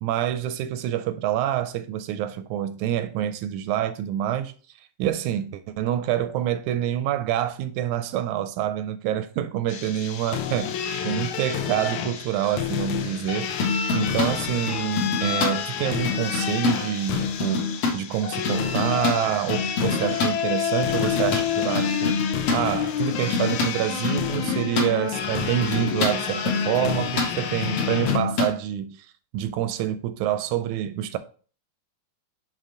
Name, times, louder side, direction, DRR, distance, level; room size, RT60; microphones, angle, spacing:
voice 1, 0.0-4.5 5.0-22.3 22.5-29.1 29.3-31.2, right 11 dB, 80° right, 1.8 m, -27 dB
sound 1, 9.7-28.2, left 9 dB, 80° left, 2.1 m, -29 dB
sound 2, 13.6-14.3 14.7-15.5 16.0-16.8 17.1-18.0 18.5-20.3 20.8-22.6 23.1-24.9 25.6-28.5, left 4 dB, 55° left, 2.3 m, -26 dB
6.5 x 4.0 x 4.8 m
omnidirectional pair, 3.6 m